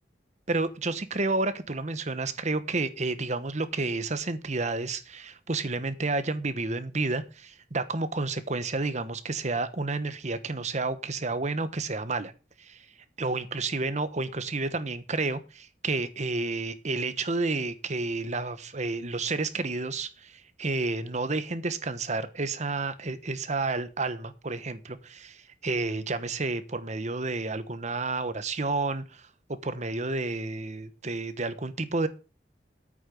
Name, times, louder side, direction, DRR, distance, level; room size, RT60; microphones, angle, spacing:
voice 1, 0.5-12.3 12.6-12.8 13.2-29.2 29.5-32.1, right 3 dB, 40° right, 12 dB, 1.2 m, -30 dB
9.0 x 6.7 x 8.5 m, 0.33 s
head